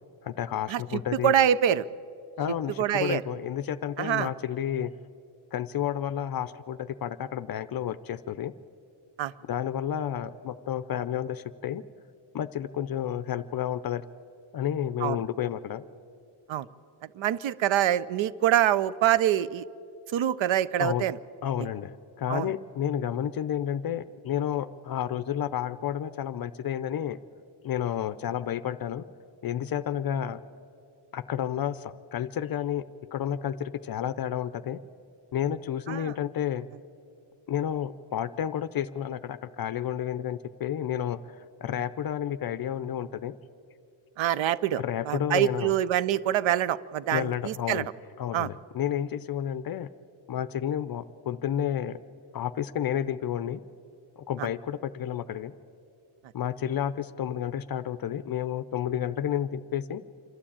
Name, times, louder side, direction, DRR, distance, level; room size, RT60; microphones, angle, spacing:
voice 1, 0.2-1.3 2.4-4.9 5.5-8.5 9.5-11.8 12.3-14.0 14.5-15.9 20.8-21.0 21.4-27.2 27.6-29.0 29.4-30.4 31.1-32.8 33.1-34.8 35.3-36.7 37.5-43.4 44.8-45.7 47.1-47.9 48.2-49.9 50.3-52.0 52.3-53.6 54.2-55.5 56.3-60.0, left 10 dB, 50° left, 14 dB, 0.5 m, -31 dB
voice 2, 1.2-1.8 2.8-3.2 4.0-4.3 9.2-9.3 15.0-15.2 16.5-16.7 17.2-19.6 20.1-21.1 22.3-22.5 35.9-36.1 44.2-47.8 48.3-48.5 54.4-54.5, right 11 dB, 70° right, 18 dB, 0.7 m, -25 dB
27.0 x 12.5 x 8.7 m, 2.7 s
wide cardioid pair, 155°, 48 cm